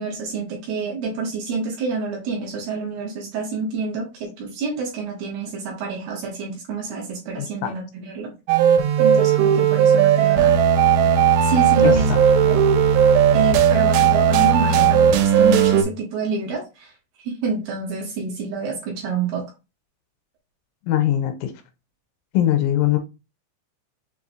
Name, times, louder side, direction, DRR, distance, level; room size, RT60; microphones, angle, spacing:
voice 1, 0.0-8.3 9.0-10.6 11.4-12.1 12.4-12.6 13.3-16.9 17.2-19.4, right 4 dB, 70° right, 0 dB, 2.6 m, -28 dB
sound 1, 8.5-15.8, right 8 dB, 85° right, 3.2 m, -16 dB
voice 2, 11.8-12.2 20.9-21.5 22.3-23.0, left 12 dB, 90° left, 8 dB, 3.1 m, -21 dB
7.0 x 2.8 x 2.6 m, 0.27 s
omnidirectional pair, 5.5 m